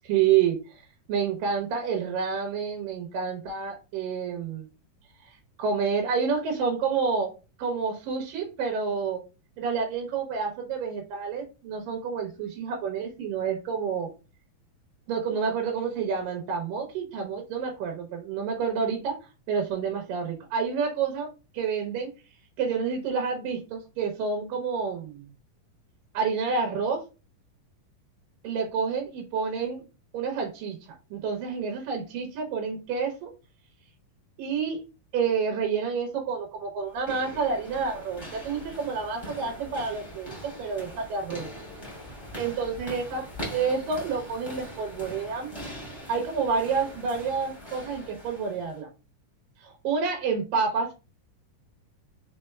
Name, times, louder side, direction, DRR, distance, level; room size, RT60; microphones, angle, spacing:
voice 1, 0.0-0.6 1.1-4.7 5.6-7.3 7.6-9.2 9.6-14.1 15.1-19.2 19.5-21.3 21.5-22.1 22.6-25.3 26.1-27.0 28.4-29.9 30.1-30.8 31.1-33.3 34.4-34.8 35.1-41.5 42.4-43.2 43.5-45.5 46.1-48.9 49.6-50.9, right 6 dB, 90° right, 3 dB, 2.7 m, -29 dB
sound 1, 36.9-48.8, equal, 10° left, 2.2 m, -42 dB
4.9 x 4.3 x 2.3 m, 0.30 s
omnidirectional pair, 3.8 m